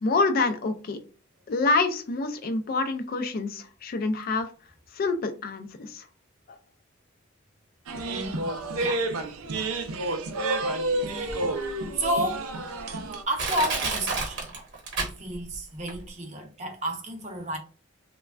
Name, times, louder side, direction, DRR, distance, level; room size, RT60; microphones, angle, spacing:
voice 1, 0.0-1.0 1.5-4.5 5.0-6.0, left 3 dB, 45° left, 0.3 m, -26 dB
sound 1, 7.9-13.2, right 2 dB, 90° right, 0.4 m, -30 dB
voice 2, 8.1-8.5 8.8-9.1 11.1-11.5 11.9-12.5 13.3-14.5 15.0-17.6, right 1 dB, 35° right, 0.6 m, -31 dB
Crushing, 11.3-11.4 12.0-12.1 12.8-12.9 13.4-15.6 15.9-16.0, right 3 dB, 60° right, 0.9 m, -29 dB
3.1 x 2.1 x 2.3 m
head